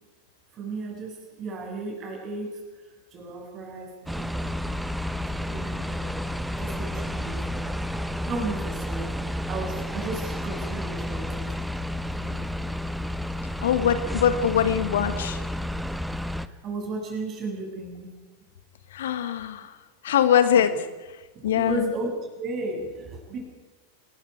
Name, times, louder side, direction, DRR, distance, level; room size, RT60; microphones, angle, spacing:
voice 1, 0.5-2.6 3.1-4.7 5.2-7.7 8.3-11.6 12.2-12.4 16.4-18.1 20.6-20.8 21.4-23.4, right 2 dB, 30° right, 1 dB, 7.6 m, -35 dB
sound 1, 4.1-16.5, left 1 dB, ahead, 0.9 m, -31 dB
voice 2, 13.6-15.4 18.9-19.7 20.0-20.8 21.4-21.9, left 9 dB, 60° left, 11 dB, 1.5 m, -22 dB
27.5 x 21.5 x 4.8 m, 1.2 s
figure-of-eight pair, 90°, 0 cm